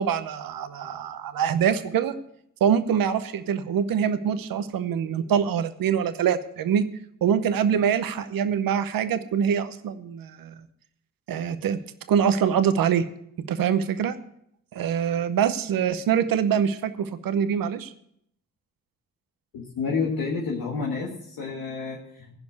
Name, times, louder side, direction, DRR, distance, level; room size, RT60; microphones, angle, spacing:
voice 1, 0.0-2.1 2.6-6.8 7.2-10.5 11.3-11.8 12.1-13.0 13.5-14.1 14.7-17.9, right 8 dB, 80° right, 11 dB, 0.9 m, -24 dB
voice 2, 19.5-22.4, left 4 dB, 90° left, -3 dB, 1.6 m, -29 dB
15.5 x 5.3 x 7.9 m, 0.71 s
supercardioid pair, 45°, 34 cm